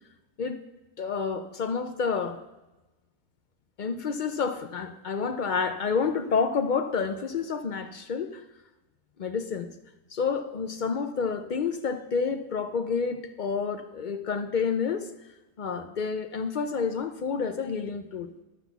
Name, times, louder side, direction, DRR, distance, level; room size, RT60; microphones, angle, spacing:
voice 1, 1.0-2.4 3.8-8.4 9.2-9.7 10.1-15.1 15.6-18.3, left 5 dB, 80° left, 8 dB, 0.4 m, -29 dB
12.0 x 5.9 x 7.0 m, 1.1 s
omnidirectional pair, 1.6 m